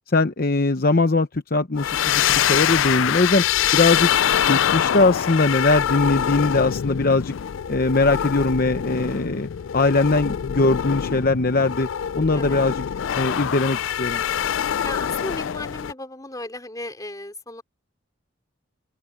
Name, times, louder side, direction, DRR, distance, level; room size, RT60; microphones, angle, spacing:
voice 1, 0.1-3.4 3.7-4.1 4.5-7.3 7.7-9.5 9.7-11.9 12.2-12.8 13.1-14.2, left 3 dB, 45° left, 0.8 m, -20 dB
sound 1, 1.8-15.9, left 9 dB, 70° left, 0.4 m, -24 dB
voice 2, 14.8-17.6, left 2 dB, 20° left, 3.9 m, -35 dB
open air
head